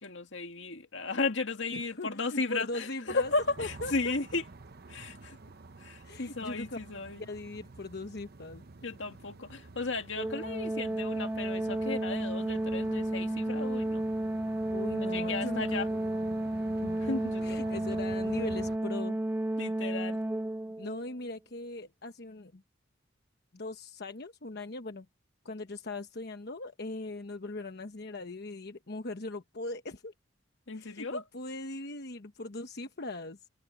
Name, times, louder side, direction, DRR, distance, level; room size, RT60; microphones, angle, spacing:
voice 1, 0.0-4.4 4.9-5.4 5.8-7.3 8.8-14.1 15.0-15.9 17.0-18.0 19.6-20.2 30.7-31.2, left 3 dB, 80° left, 2.1 m, -35 dB
voice 2, 1.7-3.3 3.6-4.1 6.0-6.8 7.2-8.6 14.7-16.1 16.8-16.9 17.4-19.2 20.8-22.6 23.5-25.1 25.4-30.1 30.8-33.4, left 2 dB, 60° left, 1.1 m, -40 dB
sound 1, 3.1-18.8, right 3 dB, 55° right, 0.9 m, -49 dB
Organ, 10.2-21.0, right 1 dB, 10° right, 0.3 m, -32 dB
head